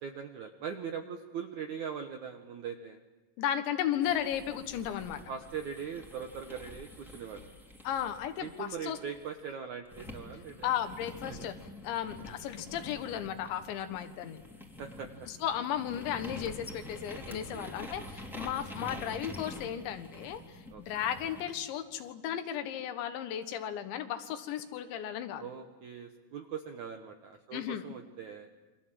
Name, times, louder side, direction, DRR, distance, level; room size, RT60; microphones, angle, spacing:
voice 1, 0.0-3.0 5.3-7.5 8.4-10.7 11.3-11.5 14.8-15.3 17.2-17.7 20.7-20.8 25.4-28.5, right 7 dB, 70° right, 5 dB, 1.8 m, -41 dB
voice 2, 3.4-5.2 7.9-9.0 10.6-11.6 11.8-14.4 15.3-25.4 27.5-27.8, left 10 dB, 85° left, 9 dB, 3.8 m, -35 dB
sound 1, 4.0-9.4 9.9-21.5, left 1 dB, ahead, 2.8 m, -47 dB
28.5 x 25.5 x 7.7 m, 1.2 s
omnidirectional pair, 5.1 m